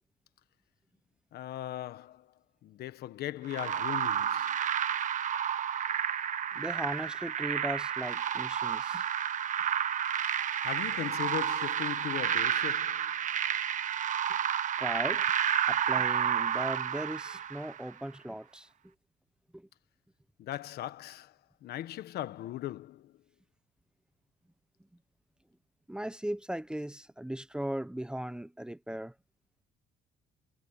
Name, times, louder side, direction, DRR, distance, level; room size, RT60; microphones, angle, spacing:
voice 1, 1.3-2.3 2.6-4.6 10.6-13.1 20.4-21.3 21.6-23.1, left 13 dB, 70° left, 1.5 m, -39 dB
reverberated pulses, 3.5-17.9, right 9 dB, 50° right, 1.3 m, -31 dB
voice 2, 6.5-9.0 14.8-15.2 15.7-18.7 19.5-19.7 25.9-29.1, right 1 dB, 5° right, 1.2 m, -37 dB
cardioid pair, 110°, 17 cm